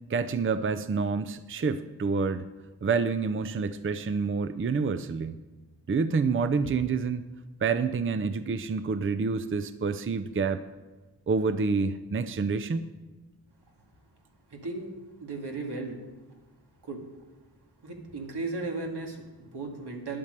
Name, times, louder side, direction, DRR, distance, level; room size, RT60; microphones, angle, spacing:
voice 1, 0.1-2.5 2.8-5.4 5.9-7.2 7.6-10.6 11.3-12.8, right 4 dB, 35° right, 11 dB, 0.5 m, -28 dB
voice 2, 14.5-14.9 15.2-16.0 16.9-17.0 17.8-20.2, right 3 dB, 85° right, 1 dB, 2.2 m, -35 dB
10.5 x 8.7 x 6.7 m, 1.2 s
wide cardioid pair, 105°, 39 cm